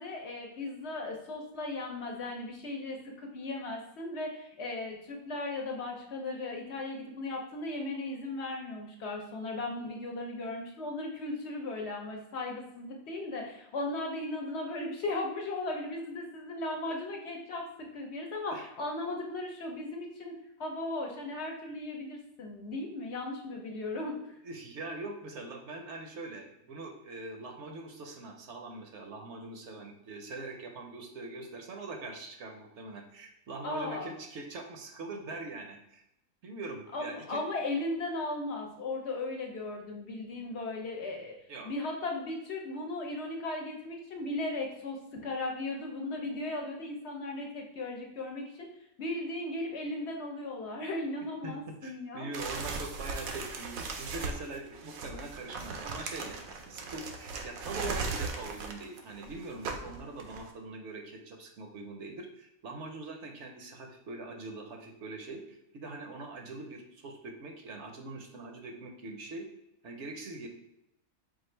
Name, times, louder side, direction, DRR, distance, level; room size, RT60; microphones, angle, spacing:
voice 1, 0.0-24.3 33.6-34.1 36.9-41.4 41.6-48.7 49.0-52.3 52.6-52.7, left 2 dB, 60° left, 1 dB, 0.8 m, -37 dB
voice 2, 24.4-36.0 36.4-37.4 41.5-41.7 51.4-69.5 69.8-70.5, right 3 dB, 65° right, 3 dB, 0.9 m, -43 dB
sound 1, 52.3-60.5, right 4 dB, 85° right, 1.1 m, -38 dB
4.4 x 2.4 x 4.3 m, 0.84 s
omnidirectional pair, 1.4 m